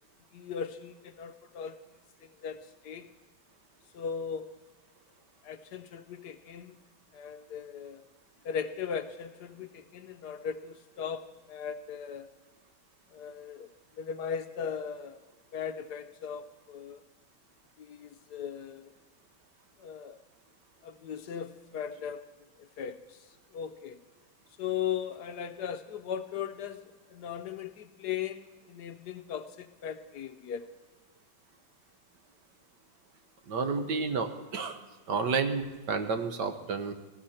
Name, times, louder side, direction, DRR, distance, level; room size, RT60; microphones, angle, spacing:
voice 1, 0.3-1.8 2.2-3.1 3.9-4.5 5.4-6.8 7.1-8.0 8.4-12.3 13.1-13.7 14.0-15.2 15.5-17.0 17.8-18.9 19.8-20.2 20.8-22.2 22.6-23.3 23.5-24.0 24.6-30.6, left 7 dB, 70° left, 9 dB, 1.1 m, -38 dB
voice 2, 33.5-34.8 35.1-36.9, right 4 dB, 65° right, 7 dB, 1.6 m, -30 dB
19.5 x 15.5 x 4.3 m, 1.3 s
omnidirectional pair, 2.0 m